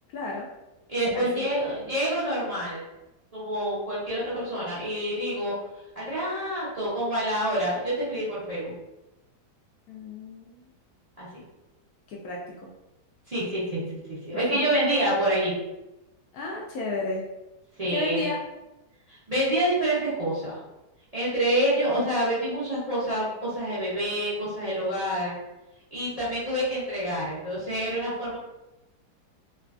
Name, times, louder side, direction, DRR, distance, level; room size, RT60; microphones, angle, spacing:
voice 1, 0.1-0.5 1.0-1.5 9.9-10.7 12.1-12.4 14.5-14.6 16.3-17.2 17.9-18.4, left 3 dB, 70° left, -2 dB, 0.9 m, -32 dB
voice 2, 0.9-2.8 3.3-5.5 5.9-8.7 11.2-11.3 13.3-15.5 17.8-18.3 19.1-20.6 21.1-25.3 25.9-28.4, right 1 dB, 45° right, -10 dB, 0.5 m, -27 dB
3.1 x 2.3 x 2.4 m, 0.96 s
omnidirectional pair, 1.8 m